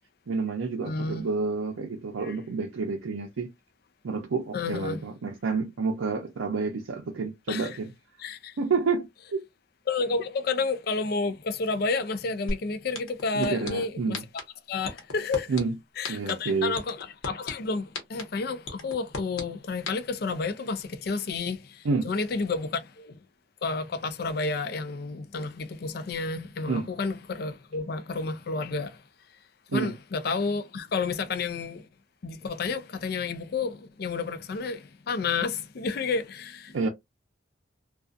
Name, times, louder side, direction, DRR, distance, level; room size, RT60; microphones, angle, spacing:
voice 1, 0.3-3.5 4.0-7.9 8.6-9.4 13.3-14.2 15.5-15.7 16.1-16.7 21.8-22.1 26.7-26.9 29.7-29.9 36.7-36.9, right 4 dB, 85° right, 0.5 m, -29 dB
voice 2, 0.9-1.3 2.2-2.4 4.5-5.0 7.5-7.8 8.2-8.6 9.9-14.2 14.7-15.5 16.0-23.2 23.6-29.0 29.7-31.9 32.2-36.9, left 4 dB, 50° left, 0.4 m, -30 dB
sound 1, 12.5-12.6 12.9-13.7 14.1-14.4 14.8-15.6 16.0-16.3 16.8-17.5 17.9-18.2 18.7-19.4 19.9-20.0, left 2 dB, 85° left, 0.9 m, -32 dB
2.3 x 2.3 x 2.5 m
head